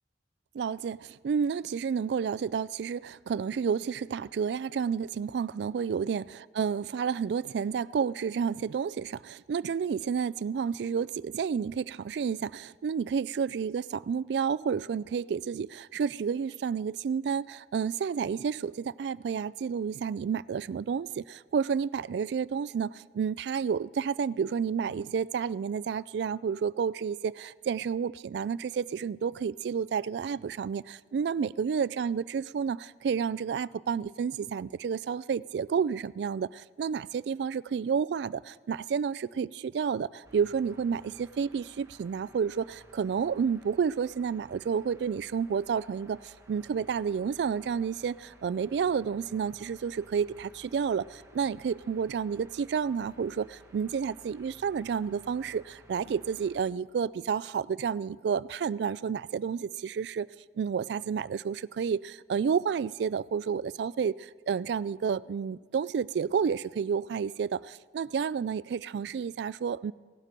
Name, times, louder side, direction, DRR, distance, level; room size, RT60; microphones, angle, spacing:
voice 1, 0.5-60.3 60.6-69.9, right 6 dB, 65° right, 0.3 m, -30 dB
sound 1, 40.2-56.6, right 1 dB, 15° right, 1.4 m, -57 dB
17.5 x 12.0 x 5.2 m
head